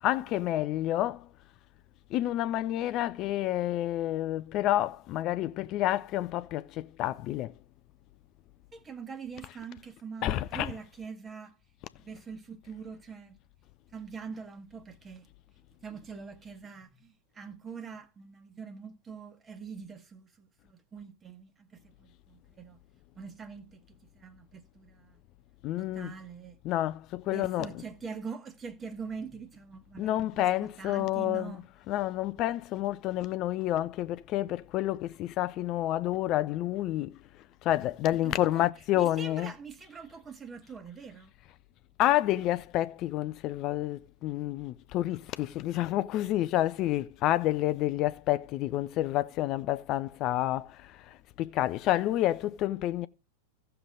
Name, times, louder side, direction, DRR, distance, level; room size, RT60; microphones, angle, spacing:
voice 1, 0.0-1.3 2.1-7.5 10.2-10.7 25.6-26.1 26.6-27.9 30.0-37.1 37.6-39.5 42.0-53.1, left 14 dB, 35° left, 0.4 m, -29 dB
voice 2, 8.7-11.6 12.0-13.4 13.9-15.3 15.8-22.8 23.1-25.2 25.8-26.6 27.3-31.6 38.2-38.6 38.9-41.3, right 6 dB, 20° right, 1.3 m, -44 dB
15.5 x 6.8 x 3.8 m
figure-of-eight pair, 90°, 0 cm